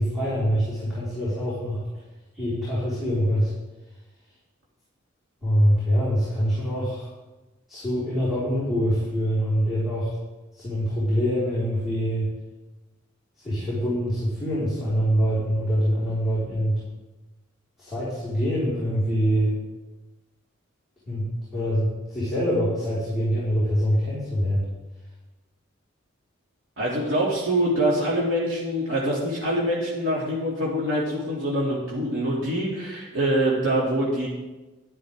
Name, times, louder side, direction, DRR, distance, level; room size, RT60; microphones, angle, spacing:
voice 1, 0.0-1.8 2.3-3.5 5.4-7.1 7.7-10.1 10.5-12.3 13.4-16.8 17.8-19.6 21.0-24.6, equal, ahead, -13 dB, 4.9 m, -24 dB
voice 2, 26.8-34.3, right 1 dB, 75° right, -6 dB, 2.7 m, -24 dB
12.0 x 12.0 x 3.7 m, 1.1 s
head